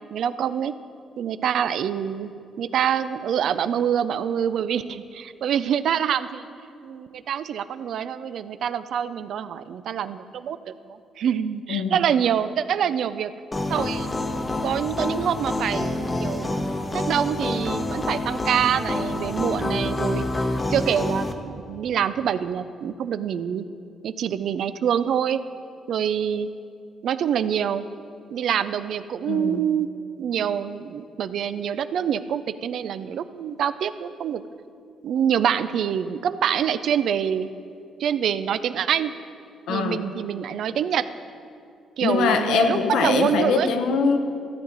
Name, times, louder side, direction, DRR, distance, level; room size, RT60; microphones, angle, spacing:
voice 1, 0.1-0.7 1.2-2.3 2.6-6.5 6.8-13.3 13.7-14.1 14.6-16.5 16.9-20.3 20.7-23.7 24.0-25.4 25.9-26.5 27.0-27.9 28.3-29.9 30.2-34.4 35.0-37.5 38.0-39.1 39.7-41.1 42.0-43.7, right 8 dB, 70° right, 13 dB, 0.4 m, -25 dB
sound 1, 13.5-21.3, left 2 dB, 25° left, 0.8 m, -27 dB
voice 2, 29.3-29.6 39.7-40.1 42.0-44.2, left 5 dB, 85° left, 6 dB, 0.9 m, -22 dB
13.5 x 7.9 x 4.0 m, 2.4 s
cardioid pair, 90°, 0 cm